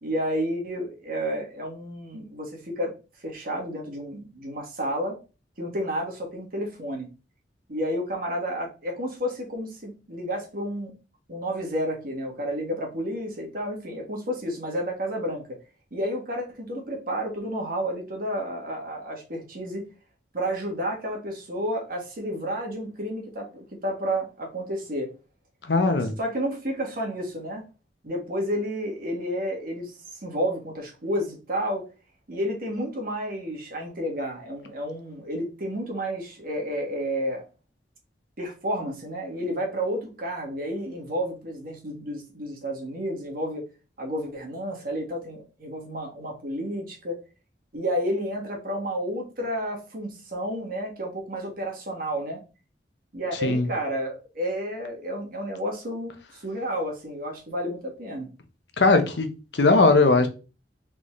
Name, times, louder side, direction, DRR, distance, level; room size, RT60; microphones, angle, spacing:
voice 1, 0.0-2.9 3.2-5.2 5.6-7.1 7.7-10.9 11.3-15.4 15.9-19.8 20.3-25.1 26.2-27.6 28.0-31.8 32.3-37.4 38.4-43.6 44.0-47.2 47.7-52.4 53.1-58.3, equal, 55° right, 1.6 m, -31 dB
voice 2, 25.7-26.1 53.4-53.7 58.8-60.3, left 3 dB, 75° left, 0.8 m, -19 dB
4.1 x 3.6 x 3.1 m
head